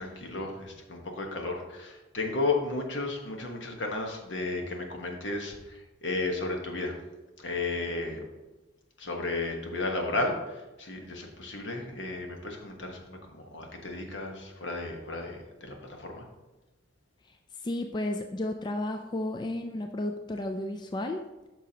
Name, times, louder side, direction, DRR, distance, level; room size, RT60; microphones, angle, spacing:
voice 1, 0.0-6.9 7.4-8.2 9.0-16.3, left 3 dB, 70° left, 2 dB, 1.2 m, -33 dB
voice 2, 17.6-21.3, left 1 dB, 25° left, 5 dB, 0.3 m, -33 dB
9.0 x 6.1 x 2.8 m, 1.1 s
head